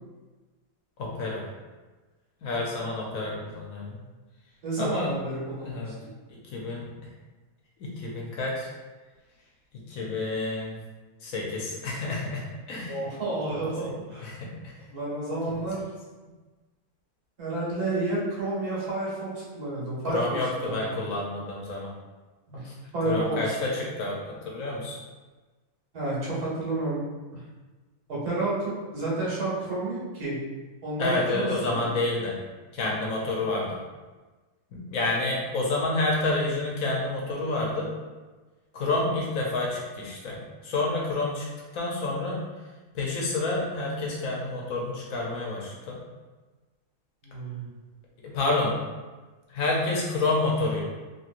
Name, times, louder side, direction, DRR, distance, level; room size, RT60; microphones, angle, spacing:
voice 1, 1.0-1.4 2.4-4.0 4.8-5.1 5.6-5.9 6.5-6.9 7.8-8.7 9.7-10.8 11.2-13.0 13.8-13.9 14.2-14.7 15.5-15.6 20.0-21.9 22.6-22.7 23.0-25.0 31.0-32.3 32.7-33.8 34.7-37.9 38.7-41.5 41.7-42.4 42.9-46.0 48.2-48.8 49.5-50.8, left 2 dB, 70° left, -3 dB, 1.0 m, -29 dB
voice 2, 4.6-6.1 12.8-14.3 14.9-15.9 17.4-20.8 22.5-22.6 22.9-23.7 25.9-27.0 27.3-27.4 28.1-30.4 30.8-31.9 47.2-47.7, right 2 dB, 75° right, -7 dB, 1.6 m, -30 dB
2.9 x 2.9 x 2.4 m, 1.3 s
omnidirectional pair, 1.6 m